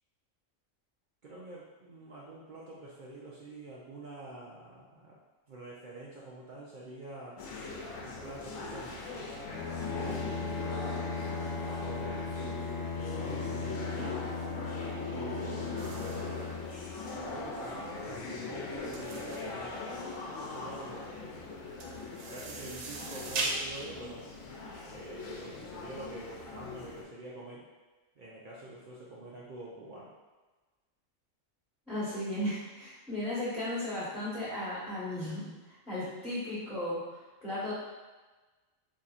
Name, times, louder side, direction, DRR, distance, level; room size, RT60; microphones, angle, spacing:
voice 1, 1.2-5.2 5.5-7.4 8.0-9.2 9.9-10.8 11.8-12.5 12.9-14.2 15.0-16.0 17.1-19.8 20.2-21.7 22.1-24.3 24.9-27.7 28.2-30.1, right 2 dB, 55° right, -5 dB, 0.5 m, -46 dB
sound 1, 7.4-27.0, left 3 dB, 85° left, 1.0 m, -41 dB
Bowed string instrument, 9.4-17.4, left 4 dB, 60° left, 1.0 m, -37 dB
sound 2, 15.8-25.4, right 3 dB, 90° right, 1.0 m, -40 dB
voice 2, 31.9-35.5 35.9-37.0 37.4-37.7, left 1 dB, ahead, -13 dB, 1.1 m, -35 dB
4.1 x 2.7 x 2.4 m, 1.2 s
omnidirectional pair, 1.3 m